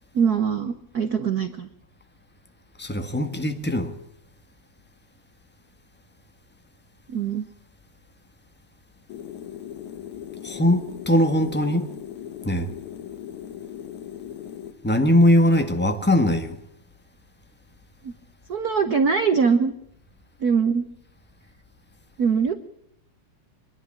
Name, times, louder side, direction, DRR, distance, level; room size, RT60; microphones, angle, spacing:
voice 1, 0.1-1.7 7.1-7.4 18.0-18.1 18.5-19.7 20.4-20.9 22.2-22.5, right 6 dB, 70° right, 0.9 m, -22 dB
voice 2, 2.8-3.9 10.4-11.9 12.4-12.7 14.8-16.6, left 1 dB, 10° left, 0.5 m, -20 dB
sound 1, 9.1-14.7, left 10 dB, 70° left, 2.5 m, -38 dB
25.0 x 11.5 x 10.0 m
omnidirectional pair, 3.4 m